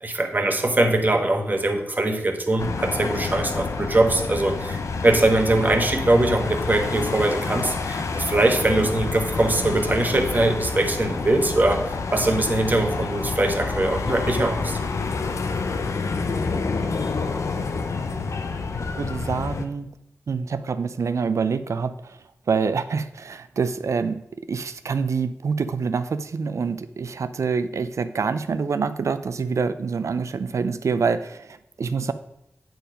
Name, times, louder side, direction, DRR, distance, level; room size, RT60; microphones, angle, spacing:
voice 1, 0.0-14.8, right 2 dB, 35° right, 5 dB, 1.2 m, -22 dB
sound 1, 2.6-19.7, left 4 dB, 85° left, 0.7 m, -28 dB
voice 2, 19.0-19.9 20.3-22.2 22.5-24.2 24.5-32.1, right 5 dB, 80° right, 12 dB, 0.4 m, -26 dB
9.0 x 4.7 x 5.1 m, 0.79 s
wide cardioid pair, 75°, 5 cm